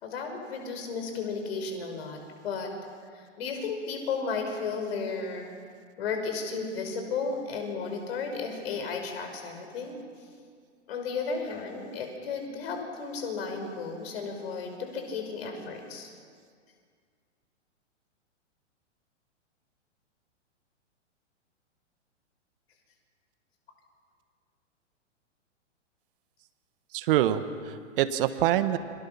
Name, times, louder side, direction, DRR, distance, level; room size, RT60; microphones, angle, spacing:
voice 1, 0.0-2.2 2.4-2.7 3.1-5.5 6.0-10.0 10.9-16.1, left 5 dB, 55° left, 4 dB, 5.7 m, -34 dB
voice 2, 26.9-28.8, right 12 dB, 45° right, 11 dB, 1.5 m, -25 dB
29.5 x 25.0 x 5.9 m, 2.1 s
figure-of-eight pair, 115°, 37 cm